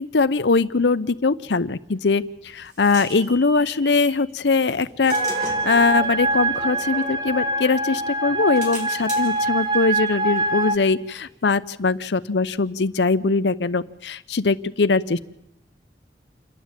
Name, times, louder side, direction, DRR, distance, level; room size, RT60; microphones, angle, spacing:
voice 1, 0.0-5.1 5.4-15.2, left 4 dB, 85° left, 13 dB, 0.7 m, -21 dB
sound 1, 2.0-4.2 4.7-7.8 8.2-11.7, right 1 dB, 45° right, 4.3 m, -41 dB
sound 2, 5.0-9.6, right 1 dB, 60° right, 7.8 m, -38 dB
sound 3, 5.1-10.8, right 2 dB, 25° right, 1.2 m, -24 dB
28.5 x 10.5 x 8.9 m, 0.87 s
head